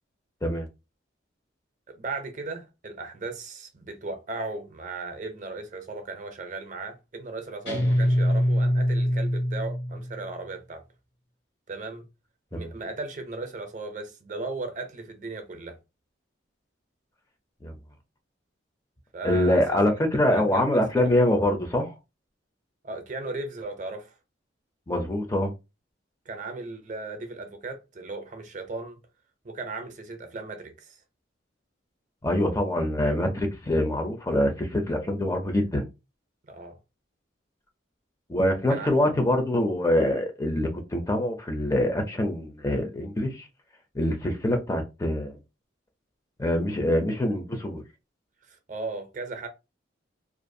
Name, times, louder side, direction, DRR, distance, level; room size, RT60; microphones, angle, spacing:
voice 1, 1.9-10.8 11.7-12.0 12.5-15.8 19.1-19.6 20.3-21.1 22.8-24.2 26.3-29.0 29.4-31.0 36.5-36.8 38.7-38.9 48.4-49.5, right 3 dB, 40° right, 0.5 m, -36 dB
Guitar, 7.7-10.3, equal, 60° left, 0.9 m, -24 dB
voice 2, 19.2-21.9 24.9-25.5 32.2-35.8 38.3-43.5 43.9-45.4 46.4-47.8, left 1 dB, 15° left, 0.4 m, -24 dB
2.4 x 2.3 x 2.6 m
head